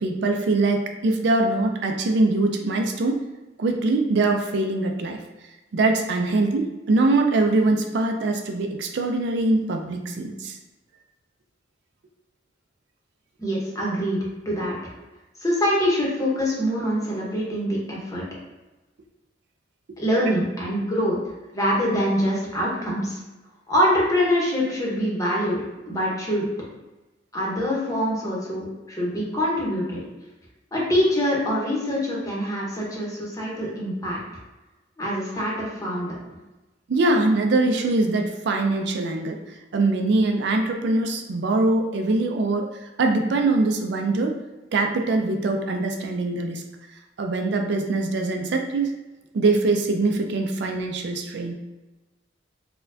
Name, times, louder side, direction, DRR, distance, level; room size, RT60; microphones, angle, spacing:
voice 1, 0.0-3.2 3.6-5.2 5.7-10.6 20.2-20.3 36.9-39.4 39.7-44.4 44.7-46.6 47.2-48.9 49.3-51.5, right 2 dB, 65° right, 4 dB, 0.4 m, -23 dB
voice 2, 13.4-14.8 15.4-18.2 20.0-21.2 21.5-23.2 23.7-26.5 27.3-30.0 30.7-34.2 35.0-36.2, equal, 20° left, -4 dB, 0.8 m, -24 dB
4.2 x 2.2 x 2.6 m, 1.1 s
head